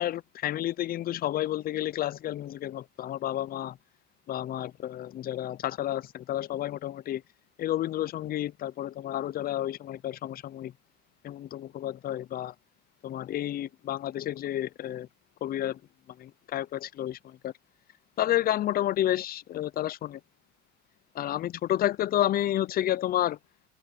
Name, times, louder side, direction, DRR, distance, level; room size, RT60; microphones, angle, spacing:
voice 1, 0.0-3.8 4.3-7.2 7.6-10.7 11.2-12.5 13.0-15.1 15.4-15.8 16.2-17.5 18.2-20.2 21.1-23.4, left 13 dB, 25° left, 0.3 m, -30 dB
cardioid pair, 135°, 37 cm